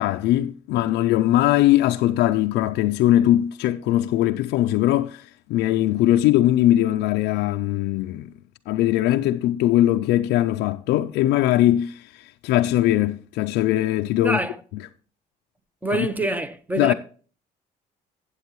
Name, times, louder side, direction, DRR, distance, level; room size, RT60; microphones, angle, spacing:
voice 1, 0.0-8.3 8.7-14.4 15.9-16.1 16.8-16.9, left 14 dB, 85° left, 0.4 m, -20 dB
voice 2, 14.2-14.6 15.8-16.9, right 1 dB, 10° right, 0.7 m, -25 dB
13.5 x 8.1 x 3.0 m
cardioid pair, 110°, 17 cm